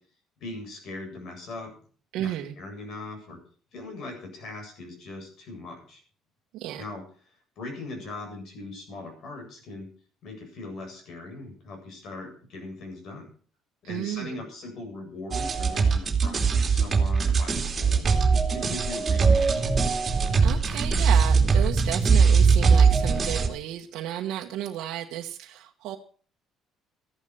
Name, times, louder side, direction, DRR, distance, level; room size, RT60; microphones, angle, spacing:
voice 1, 0.4-1.7 2.2-3.4 3.7-6.0 6.8-7.0 7.6-9.9 10.2-13.3 13.9-18.1 18.5-19.7, left 2 dB, 60° left, 4 dB, 8.0 m, -40 dB
voice 2, 2.1-2.5 6.5-6.8 13.8-14.4 20.4-26.0, right 12 dB, 75° right, 1 dB, 1.4 m, -33 dB
sound 1, 15.3-23.5, right 5 dB, 25° right, 2.6 m, -21 dB
14.0 x 11.5 x 6.3 m, 0.43 s
cardioid pair, 130°, 0 cm